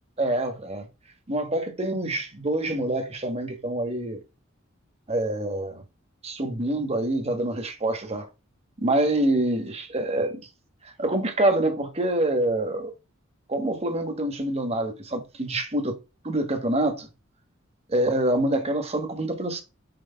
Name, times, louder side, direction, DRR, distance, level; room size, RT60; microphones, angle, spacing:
voice 1, 0.2-0.9 1.3-4.2 5.1-5.8 6.2-8.3 8.8-10.4 11.0-12.9 13.5-16.0 16.2-17.1 17.9-19.6, right 1 dB, 30° right, 1.4 m, -26 dB
7.9 x 3.1 x 5.7 m
head